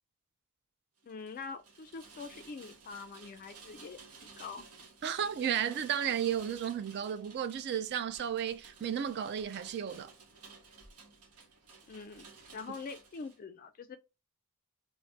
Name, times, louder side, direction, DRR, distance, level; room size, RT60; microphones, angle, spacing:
voice 1, 1.0-4.0 4.4-4.7 11.9-12.3 12.5-14.0, left 4 dB, 40° left, 0.3 m, -44 dB
Rain, 1.0-13.4, right 4 dB, 90° right, 0.8 m, -55 dB
voice 2, 5.0-10.1, right 9 dB, 50° right, 0.3 m, -33 dB
3.2 x 2.0 x 2.7 m
head